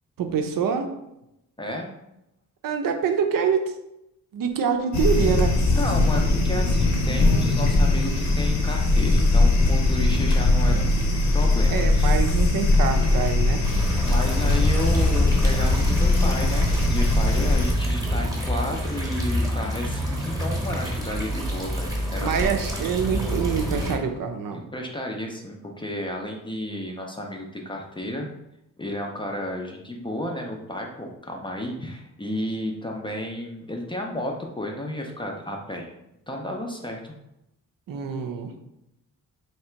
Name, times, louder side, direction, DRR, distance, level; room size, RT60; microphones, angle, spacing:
voice 1, 0.2-0.9 2.6-3.7 4.3-5.5 11.7-13.6 22.2-24.6 37.9-38.5, right 7 dB, 70° right, 6 dB, 0.6 m, -25 dB
voice 2, 1.6-1.9 5.7-11.0 11.3-12.2 14.0-22.5 24.5-28.3 28.8-35.9 36.3-37.1, left 1 dB, 15° left, 1 dB, 0.4 m, -32 dB
sound 1, 4.9-17.7, left 2 dB, 55° left, 0.8 m, -20 dB
sound 2, 13.6-24.0, equal, 10° right, 0.9 m, -27 dB
3.3 x 2.8 x 4.4 m, 0.86 s
wide cardioid pair, 155°, 35 cm